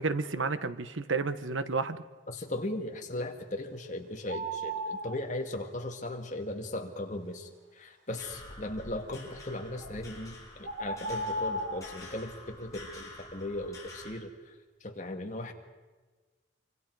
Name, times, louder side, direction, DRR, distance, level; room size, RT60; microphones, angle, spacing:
voice 1, 0.0-2.0, right 4 dB, 80° right, 12 dB, 1.1 m, -31 dB
voice 2, 2.3-14.5 14.8-15.5, left 1 dB, 40° left, 3 dB, 2.1 m, -37 dB
sound 1, 4.3-5.2 9.8-9.9 10.6-11.9, right 1 dB, 65° right, 2.6 m, -35 dB
sound 2, 8.2-14.1, left 2 dB, 15° left, 5.5 m, -48 dB
26.0 x 25.0 x 4.8 m, 1.3 s
head